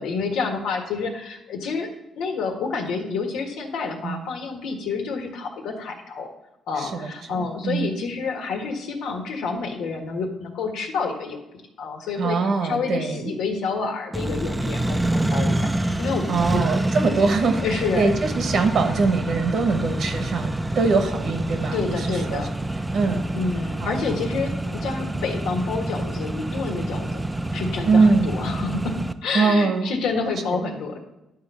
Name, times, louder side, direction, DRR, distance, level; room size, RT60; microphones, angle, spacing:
voice 1, 0.0-1.9 2.2-6.3 6.7-16.6 17.6-18.1 21.7-22.5 23.3-27.2 27.5-31.0, left 4 dB, 85° left, 3 dB, 1.6 m, -29 dB
voice 2, 6.8-7.9 12.2-13.3 16.3-22.5 22.9-23.3 23.8-23.9 27.9-28.3 29.3-29.9 30.5-30.6, right 4 dB, 65° right, 6 dB, 1.2 m, -22 dB
Accelerating revving vroom, 14.1-29.1, right 1 dB, 10° right, 0.5 m, -27 dB
11.0 x 3.9 x 6.9 m, 0.93 s
cardioid pair, 90°, 0 cm